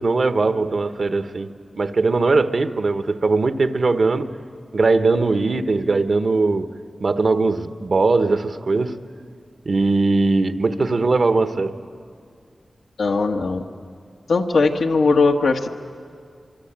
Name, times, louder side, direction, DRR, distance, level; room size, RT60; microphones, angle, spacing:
voice 1, 0.0-1.5 1.8-4.3 4.7-6.7 7.0-9.0 9.6-11.8, right 3 dB, 65° right, 9 dB, 1.2 m, -20 dB
voice 2, 13.0-13.6 14.3-15.7, left 3 dB, 90° left, 2 dB, 1.5 m, -19 dB
24.5 x 24.5 x 8.9 m, 2.2 s
cardioid pair, 55°, 0 cm